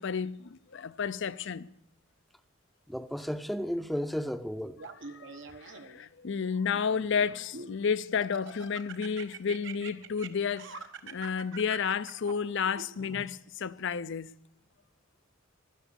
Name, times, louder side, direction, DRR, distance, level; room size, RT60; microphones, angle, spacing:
voice 1, 0.0-1.7 5.1-14.3, left 6 dB, 65° left, 0.6 m, -32 dB
voice 2, 2.9-4.8, equal, ahead, 0.7 m, -33 dB
Laughter, 4.8-6.1 6.7-7.8 8.2-13.2, right 4 dB, 65° right, 1.1 m, -44 dB
16.5 x 12.0 x 6.9 m
head